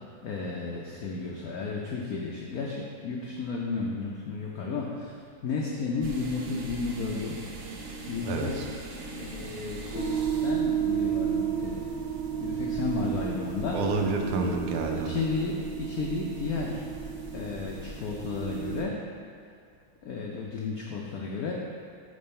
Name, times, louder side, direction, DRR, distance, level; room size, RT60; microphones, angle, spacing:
voice 1, 0.2-5.2 5.4-7.4 8.1-8.6 9.2-11.9 12.4-13.8 14.9-16.8 17.3-19.0 20.0-21.5, left 4 dB, 85° left, -2 dB, 0.8 m, -33 dB
sound 1, 6.0-12.0, right 3 dB, 70° right, 0.7 m, -41 dB
voice 2, 8.3-8.7 13.7-15.1, right 3 dB, 90° right, 2 dB, 1.6 m, -28 dB
sound 2, 9.9-18.8, right 8 dB, 50° right, 1.0 m, -32 dB
8.7 x 3.9 x 4.2 m, 2.2 s
omnidirectional pair, 2.3 m